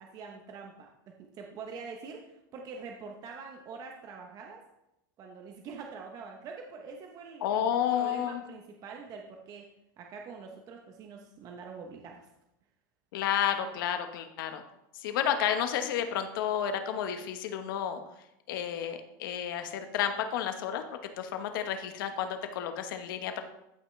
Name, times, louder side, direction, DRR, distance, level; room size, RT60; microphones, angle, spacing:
voice 1, 0.0-4.6 5.2-9.7 10.0-12.3, right 5 dB, 30° right, 2 dB, 1.0 m, -45 dB
voice 2, 7.4-8.4 13.1-14.6 14.9-18.0 18.5-20.8 21.2-23.4, left 9 dB, 70° left, 7 dB, 1.3 m, -31 dB
14.0 x 5.8 x 3.3 m, 0.87 s
supercardioid pair, 150°, 12 cm